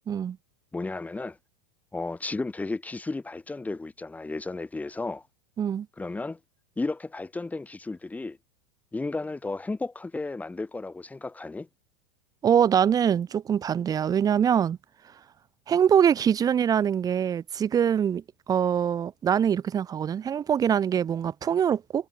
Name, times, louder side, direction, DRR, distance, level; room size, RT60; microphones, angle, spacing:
voice 1, 0.7-1.4 1.9-5.2 6.0-6.4 6.8-8.4 8.9-11.7, left 3 dB, 10° left, 4.5 m, -33 dB
voice 2, 12.4-14.8 15.7-18.2 18.5-22.1, right 8 dB, 20° right, 0.8 m, -23 dB
supercardioid pair, 130°, 17 cm